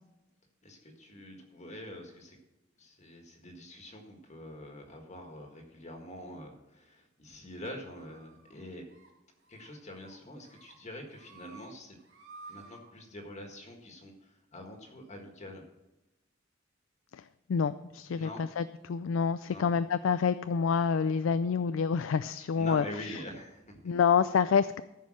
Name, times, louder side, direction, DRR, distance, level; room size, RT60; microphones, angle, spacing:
voice 1, 0.6-2.4 2.8-8.8 9.5-12.0 12.5-15.6 18.1-18.4 19.5-19.7 22.6-23.9, left 1 dB, 35° left, 3 dB, 1.6 m, -45 dB
sound 1, 8.0-8.5 8.9-9.1 9.4-9.7 10.0-10.7 11.1-11.7 12.0-12.8, right 3 dB, 75° right, 2.8 m, -52 dB
voice 2, 17.1-23.2 23.8-24.8, left 6 dB, 80° left, 13 dB, 0.4 m, -28 dB
14.0 x 5.4 x 6.3 m, 0.98 s
head